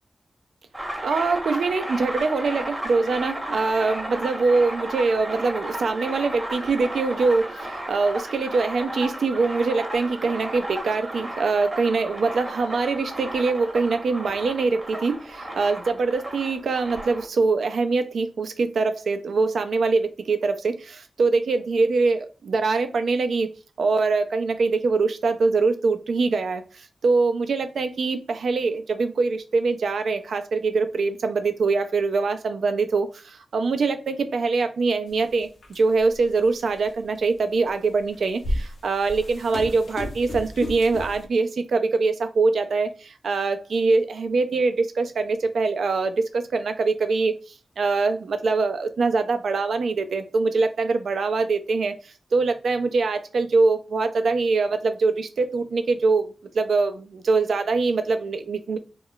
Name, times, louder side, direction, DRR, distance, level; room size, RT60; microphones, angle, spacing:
sound 1, 0.7-17.3, right 1 dB, 25° right, 0.8 m, -34 dB
voice 1, 1.0-47.4 47.8-58.8, right 4 dB, 85° right, 0.4 m, -23 dB
sound 2, 35.1-35.2 35.6-36.2 36.8-36.9 38.0-41.3, left 1 dB, 85° left, 0.6 m, -32 dB
2.2 x 2.0 x 3.7 m
cardioid pair, 65°, 0 cm